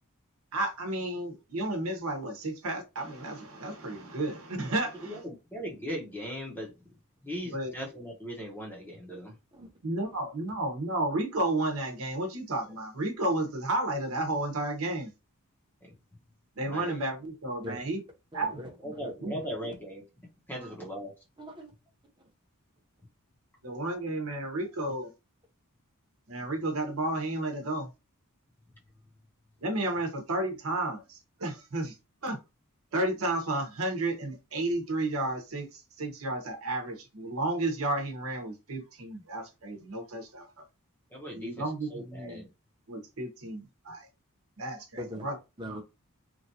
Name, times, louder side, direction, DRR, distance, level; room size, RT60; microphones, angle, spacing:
voice 1, 0.5-5.2 7.4-7.7 9.8-15.1 16.6-18.0 18.3-18.6 19.2-19.4 23.6-25.1 26.3-27.9 29.6-31.9 32.2-32.4 32.9-40.5 41.3-42.4 42.9-44.1 44.6-45.3 45.7-45.8, right 2 dB, 70° right, 0.9 m, -32 dB
voice 2, 5.0-6.7 7.2-9.3 16.7-17.0 18.8-20.0 20.5-21.1 41.1-41.6 41.9-42.4, equal, 10° left, 0.9 m, -38 dB
voice 3, 9.1-9.7 10.0-10.1 17.6-18.0 18.3-19.1 19.4-19.5 20.5-20.8 21.4-21.7 45.0-45.3 45.6-45.8, equal, 20° right, 1.0 m, -43 dB
3.0 x 2.5 x 2.7 m
head